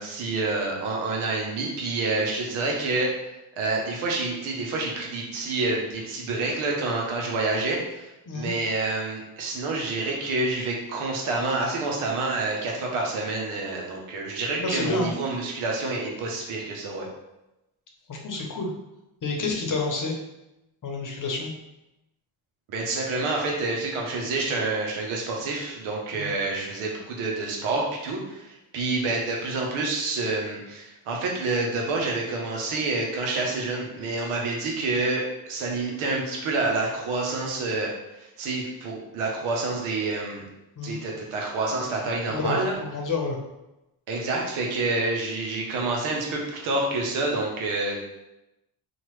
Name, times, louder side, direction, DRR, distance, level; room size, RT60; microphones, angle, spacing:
voice 1, 0.0-3.1 3.6-17.1 22.7-40.5 40.8-42.8 44.1-48.0, right 3 dB, 85° right, -1 dB, 0.9 m, -28 dB
voice 2, 14.6-15.1 18.1-18.7 19.2-20.2 20.8-21.5 26.1-26.3 40.8-41.0 42.3-43.4, left 3 dB, 40° left, 0 dB, 0.8 m, -29 dB
2.9 x 2.4 x 3.1 m, 0.94 s
supercardioid pair, 60°, 48 cm